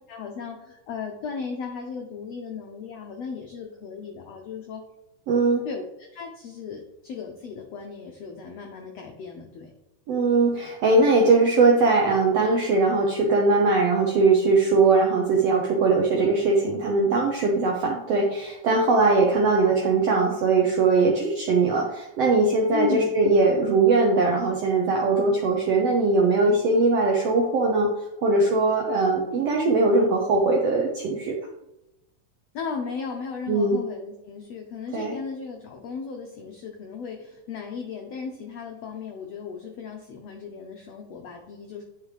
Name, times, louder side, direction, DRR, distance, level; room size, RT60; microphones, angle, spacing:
voice 1, 0.1-4.8 5.6-9.7 22.7-23.1 32.5-41.8, left 5 dB, 85° left, 2 dB, 1.4 m, -36 dB
voice 2, 5.3-5.6 10.1-27.9 28.2-31.4 33.5-33.8 34.9-35.1, right 3 dB, 80° right, 0 dB, 1.4 m, -21 dB
10.0 x 5.0 x 3.2 m, 0.91 s
omnidirectional pair, 3.9 m